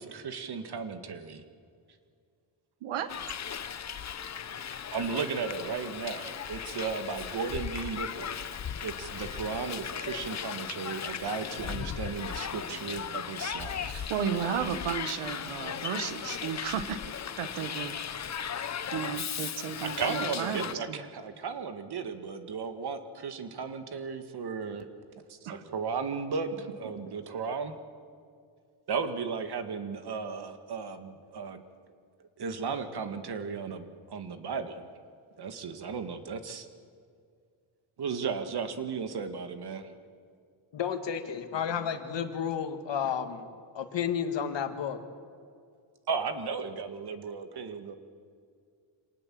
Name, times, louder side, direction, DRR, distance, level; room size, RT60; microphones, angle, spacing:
voice 1, 0.0-1.4 4.9-8.4 8.8-13.9 19.8-24.9 25.3-27.7 28.9-31.6 32.4-34.9 35.4-36.7 38.0-39.9 46.1-48.0, right 5 dB, 50° right, 8 dB, 2.0 m, -35 dB
Hiss, 3.1-20.7, left 8 dB, 35° left, 0.8 m, -37 dB
voice 2, 13.8-17.0 17.4-18.0 18.9-21.1 25.4-25.6 27.1-27.2, right 8 dB, 85° right, 11 dB, 1.5 m, -34 dB
voice 3, 40.7-43.5 43.7-45.0, left 8 dB, 60° left, 7 dB, 2.0 m, -31 dB
26.0 x 18.5 x 7.7 m, 2.3 s
cardioid pair, 100°, 49 cm